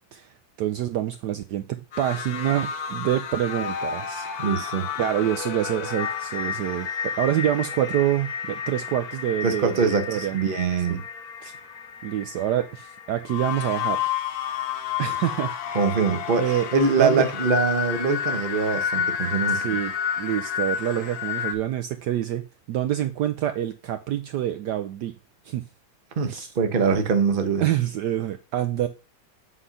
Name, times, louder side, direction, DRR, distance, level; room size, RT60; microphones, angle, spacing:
voice 1, 0.6-4.3 5.0-6.9 7.2-10.4 10.9-11.0 11.4-11.5 12.0-14.1 15.0-15.8 16.4-16.7 17.0-17.2 19.5-25.1 25.4-25.7 26.3-26.5 27.6-28.9, right 12 dB, 75° right, 1.0 m, -26 dB
sound 1, 1.9-21.5, left 8 dB, 55° left, 1.3 m, -31 dB
voice 2, 4.4-4.9 9.4-11.0 15.7-19.7 26.2-27.6, right 5 dB, 40° right, 0.8 m, -23 dB
8.1 x 3.8 x 5.6 m
omnidirectional pair, 2.2 m